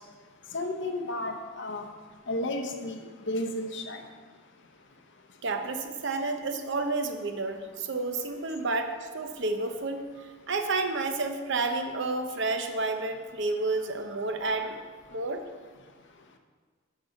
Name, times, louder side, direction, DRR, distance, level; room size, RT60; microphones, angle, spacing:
voice 1, 0.5-1.8 2.3-3.0 3.3-4.0, left 1 dB, 60° left, 5 dB, 0.8 m, -32 dB
voice 2, 5.4-15.4, right 3 dB, 60° right, 6 dB, 0.7 m, -30 dB
8.9 x 4.0 x 6.4 m, 1.5 s
head